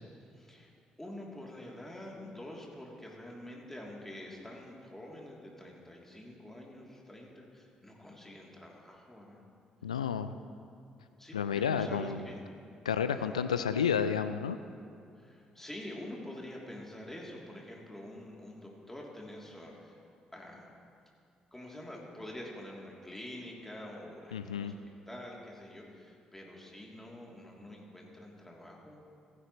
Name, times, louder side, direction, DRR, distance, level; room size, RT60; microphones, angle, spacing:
voice 1, 0.3-0.7 1.0-9.4 11.2-12.4 13.1-13.4 15.2-20.0 20.3-20.7 21.5-29.0, left 1 dB, 10° left, -2 dB, 3.1 m, -46 dB
voice 2, 9.8-10.4 11.3-12.2 12.9-14.6 24.3-24.7, left 7 dB, 85° left, 11 dB, 0.3 m, -31 dB
15.0 x 15.0 x 3.1 m, 2.5 s
figure-of-eight pair, 45°, 3 cm